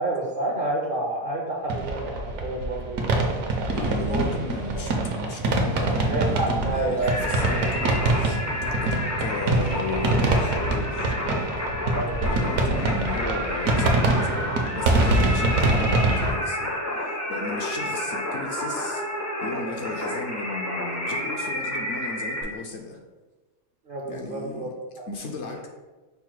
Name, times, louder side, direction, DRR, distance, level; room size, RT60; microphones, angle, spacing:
voice 1, 0.0-3.4 4.0-4.4 6.1-7.2 7.5-7.7 8.9-9.1 11.9-12.2 23.9-24.7 25.0-25.1, right 2 dB, 55° right, -2 dB, 0.6 m, -29 dB
sound 1, 1.7-16.3, right 2 dB, 75° right, 1.1 m, -24 dB
voice 2, 3.7-11.2 12.2-19.0 19.4-23.0 24.1-24.7 25.1-25.7, left 3 dB, 65° left, 2 dB, 0.8 m, -35 dB
Singing, 7.0-22.4, left 1 dB, 25° left, 0.4 m, -30 dB
5.5 x 2.1 x 4.5 m, 1.2 s
omnidirectional pair, 1.5 m